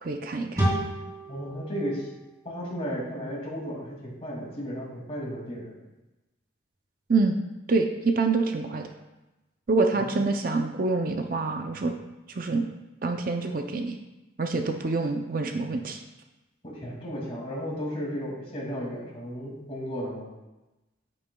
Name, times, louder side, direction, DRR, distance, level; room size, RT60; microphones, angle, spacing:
voice 1, 0.0-0.7 7.1-7.4 7.7-8.9 9.7-11.9 12.3-12.7 13.0-14.0 14.4-16.0, right 3 dB, 45° right, 4 dB, 0.5 m, -26 dB
sound 1, 0.6-3.9, right 1 dB, 20° right, 2.8 m, -32 dB
voice 2, 1.3-2.1 2.4-5.7 9.9-10.1 16.6-20.3, equal, 30° left, -4 dB, 2.3 m, -34 dB
9.9 x 8.7 x 2.3 m, 1.1 s
head